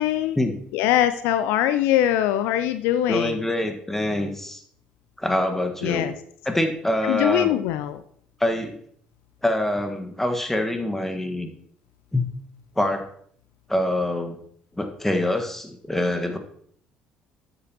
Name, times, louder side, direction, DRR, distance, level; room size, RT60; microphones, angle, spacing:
voice 1, 0.0-0.4 0.7-3.4 5.8-6.1 7.1-8.0, left 12 dB, 65° left, 12 dB, 0.4 m, -22 dB
voice 2, 3.1-4.6 5.2-6.1 6.4-7.6 8.4-8.8 9.4-11.5 12.1-12.3 12.7-13.1 13.7-14.4 14.8-16.4, left 1 dB, 5° left, 5 dB, 1.5 m, -25 dB
12.5 x 8.7 x 3.0 m, 0.64 s
figure-of-eight pair, 55°, 4 cm